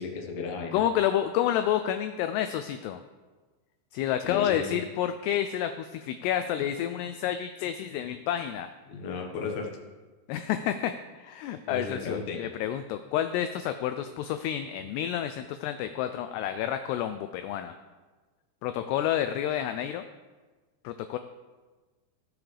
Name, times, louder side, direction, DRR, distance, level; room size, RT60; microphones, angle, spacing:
voice 1, 0.0-0.8 4.2-4.8 8.9-9.7 11.7-12.4, left 4 dB, 60° left, 1 dB, 1.9 m, -34 dB
voice 2, 0.7-3.0 3.9-8.7 10.3-17.7 18.6-20.1 20.8-21.2, left 11 dB, 85° left, 9 dB, 2.4 m, -29 dB
18.0 x 7.2 x 3.3 m, 1.3 s
omnidirectional pair, 5.1 m